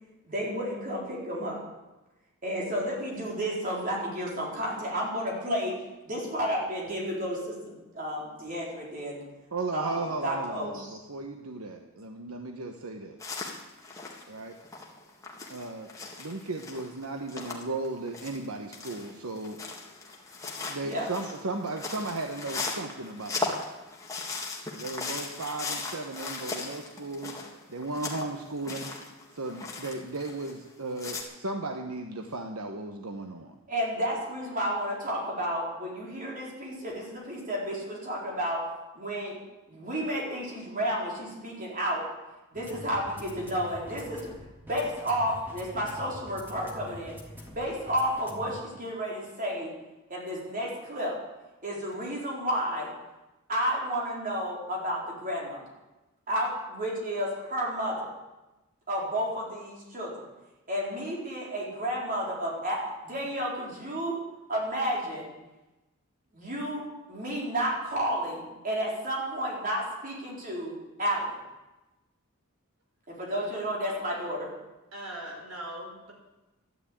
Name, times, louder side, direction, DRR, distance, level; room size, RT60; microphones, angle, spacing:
voice 1, 0.3-1.6 2.4-5.8 6.0-9.2 9.7-11.0 20.8-21.1 33.7-38.6 38.9-39.4 39.7-42.1 42.5-44.3 44.6-47.2 47.5-49.7 50.1-51.2 51.6-52.9 53.5-55.6 56.3-58.1 58.9-60.3 60.7-64.2 64.5-65.3 66.3-71.4 73.1-74.5, equal, 40° right, -3 dB, 4.3 m, -31 dB
voice 2, 9.5-13.2 14.3-14.6 15.5-15.9 16.2-19.5 20.6-23.7 24.8-27.4 27.7-28.9 29.3-33.6, right 2 dB, 90° right, 4 dB, 1.2 m, -36 dB
sound 1, 13.2-18.4 18.7-30.7 31.0-31.2, left 3 dB, 15° left, 1.9 m, -38 dB
sound 2, 42.5-48.5, equal, 10° right, 2.3 m, -46 dB
voice 3, 74.9-76.1, right 1 dB, 70° right, 0 dB, 4.8 m, -40 dB
13.0 x 10.5 x 8.7 m, 1.1 s
head